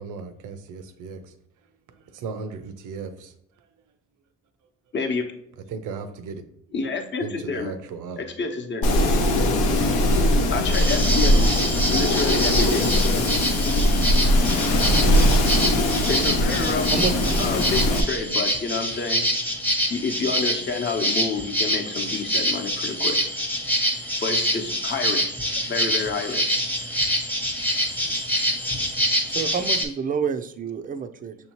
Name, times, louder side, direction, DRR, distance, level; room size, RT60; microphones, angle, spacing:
voice 1, 0.0-1.3 1.9-3.7 5.7-6.4 7.2-8.2 11.8-12.0 27.8-28.2, right 5 dB, 85° right, 9 dB, 0.6 m, -37 dB
voice 2, 4.9-5.3 6.7-7.8 8.2-8.9 10.5-11.6 11.9-12.9 16.1-16.9 17.4-19.3 19.9-23.2 24.2-26.5, left 4 dB, 35° left, 3 dB, 0.8 m, -29 dB
Wind, 8.8-18.0, left 1 dB, 80° left, 0.7 m, -20 dB
sound 1, 10.7-29.9, equal, 5° left, 0.8 m, -26 dB
voice 3, 16.9-17.7 28.8-28.9 29.3-31.4, right 6 dB, 30° right, 9 dB, 0.4 m, -29 dB
6.3 x 2.8 x 3.0 m, 0.75 s
cardioid pair, 90°, 30 cm